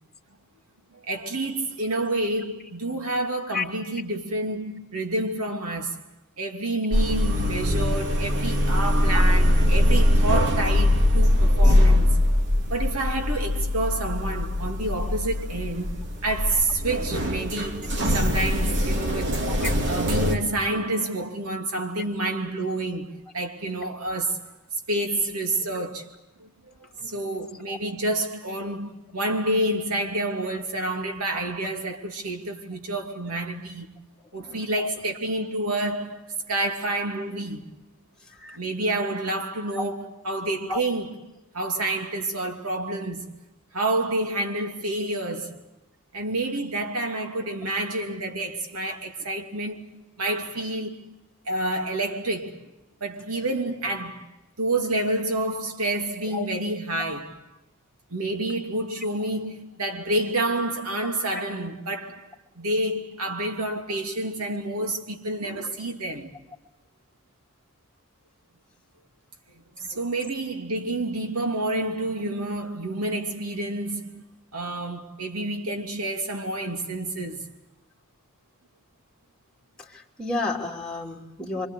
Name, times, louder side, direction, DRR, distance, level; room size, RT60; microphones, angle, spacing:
voice 1, 1.1-6.0 6.4-12.2 12.7-15.9 16.2-17.9 18.1-19.5 19.8-24.5 24.9-26.1 26.4-33.9 34.3-37.7 38.5-41.2 41.5-43.3 43.7-45.6 46.1-51.0 51.5-52.6 53.0-57.5 58.1-66.4 69.5-74.2 74.5-77.5, right 2 dB, 85° right, 2.8 m, -29 dB
sound 1, 6.9-20.3, left 1 dB, 55° right, 2.9 m, -22 dB
voice 2, 80.2-81.7, left 3 dB, 5° left, 3.0 m, -30 dB
26.5 x 25.0 x 8.4 m
head